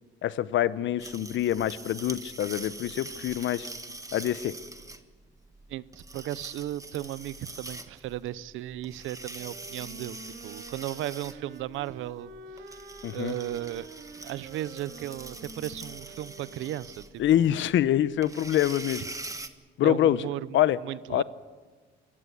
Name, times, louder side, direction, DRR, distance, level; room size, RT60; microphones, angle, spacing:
voice 1, 0.2-3.7 4.1-4.5 13.0-13.3 17.2-19.0 19.8-20.2 20.5-20.8 21.1-21.2, left 12 dB, 70° left, 16 dB, 0.9 m, -25 dB
sound 1, 1.0-19.5, right 2 dB, 15° right, 1.5 m, -44 dB
voice 2, 5.7-12.3 13.1-13.9 14.2-17.0 17.4-17.6 19.8-21.2, right 13 dB, 85° right, 18 dB, 0.7 m, -36 dB
sound 2, 9.3-17.3, right 3 dB, 70° right, 2.7 m, -47 dB
25.5 x 15.0 x 8.2 m, 1.4 s
cardioid pair, 90°, 20 cm